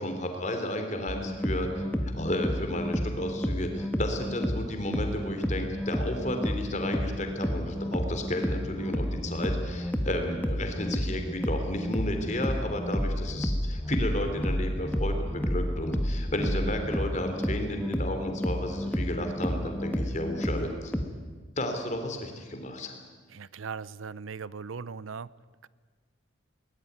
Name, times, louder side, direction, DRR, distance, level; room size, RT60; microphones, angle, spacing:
voice 1, 0.0-20.9 21.6-23.0, left 1 dB, 35° left, 5 dB, 3.4 m, -32 dB
sound 1, 1.1-21.0, equal, 10° left, 1.5 m, -31 dB
voice 2, 23.3-25.3 25.6-25.7, right 5 dB, 85° right, 20 dB, 0.6 m, -39 dB
21.5 x 19.5 x 9.6 m, 1.5 s
head